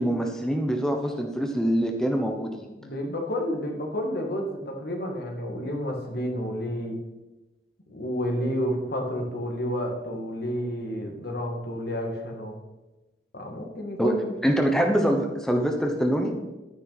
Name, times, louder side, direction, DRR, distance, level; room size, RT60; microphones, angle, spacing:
voice 1, 0.0-2.7 14.0-14.1 14.4-16.3, equal, 5° left, 2 dB, 0.9 m, -24 dB
voice 2, 2.8-7.0 7.9-12.6 13.3-14.4, equal, 55° left, 2 dB, 2.0 m, -30 dB
12.0 x 9.6 x 4.1 m, 1.1 s
head